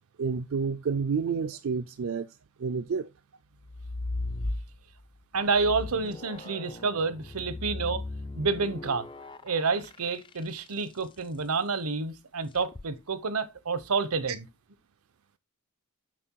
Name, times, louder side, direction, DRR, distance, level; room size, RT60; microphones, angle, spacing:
voice 1, 0.2-3.1 14.3-14.4, right 5 dB, 65° right, 0.4 m, -30 dB
sound 1, 3.6-5.0 5.5-11.0 12.5-12.9, left 2 dB, 20° left, 0.4 m, -37 dB
voice 2, 5.3-8.0 8.3-9.1 9.4-14.4, right 4 dB, 80° right, 0.9 m, -29 dB
7.6 x 6.0 x 4.6 m
head